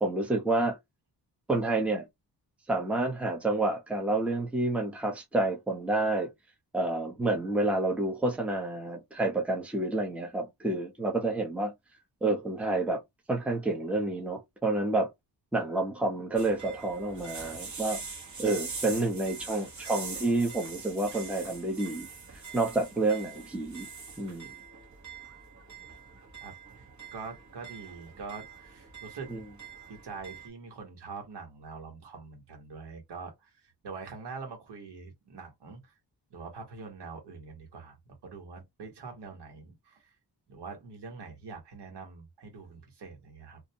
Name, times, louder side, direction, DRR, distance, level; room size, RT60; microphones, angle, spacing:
voice 1, 0.0-0.8 1.5-2.0 2.7-6.3 6.7-11.7 12.2-13.0 13.3-15.1 15.5-18.0 18.4-22.1 22.5-23.9 24.2-24.5 29.3-29.4, right 2 dB, 5° right, 0.7 m, -29 dB
sound 1, 16.4-30.5, right 4 dB, 45° right, 1.0 m, -44 dB
voice 2, 27.1-29.3 29.9-35.9 36.3-38.0 38.2-40.0 40.5-43.6, right 4 dB, 75° right, 1.3 m, -44 dB
2.6 x 2.1 x 2.8 m
wide cardioid pair, 125°, 41 cm